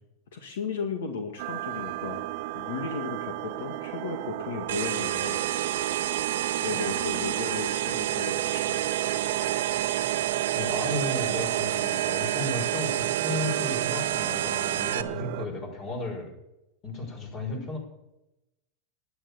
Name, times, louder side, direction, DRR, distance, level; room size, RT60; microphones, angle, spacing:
voice 1, 0.3-2.3 2.5-5.4 6.6-8.8, left 5 dB, 80° left, 4 dB, 2.0 m, -35 dB
sound 1, 1.4-15.5, right 16 dB, 60° right, 0.8 m, -33 dB
sound 2, 4.7-15.0, right 11 dB, 90° right, 1.2 m, -30 dB
voice 2, 10.5-16.3 16.8-17.8, left 2 dB, 40° left, 3 dB, 6.0 m, -34 dB
12.0 x 11.5 x 7.1 m, 0.92 s
supercardioid pair, 130°, 0 cm